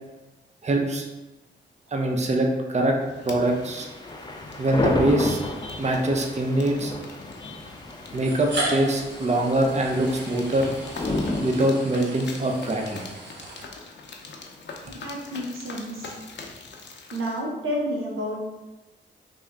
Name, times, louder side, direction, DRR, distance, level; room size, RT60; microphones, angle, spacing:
voice 1, 0.6-1.0 1.9-3.0 3.2-3.9 4.6-5.4 5.8-6.9 8.1-10.7 11.4-13.0, right 1 dB, 35° right, 1 dB, 0.6 m, -23 dB
sound 1, 3.0-17.4, left 3 dB, 60° left, 0.6 m, -43 dB
sound 2, 3.4-11.6, left 2 dB, 20° left, 0.6 m, -32 dB
sound 3, 5.8-5.9 7.1-7.2 8.1-14.1, right 1 dB, 55° right, 1.0 m, -36 dB
voice 2, 14.8-16.1 17.1-18.4, equal, 85° right, -2 dB, 0.8 m, -30 dB
3.4 x 2.6 x 3.4 m, 1.1 s
cardioid pair, 50°, 21 cm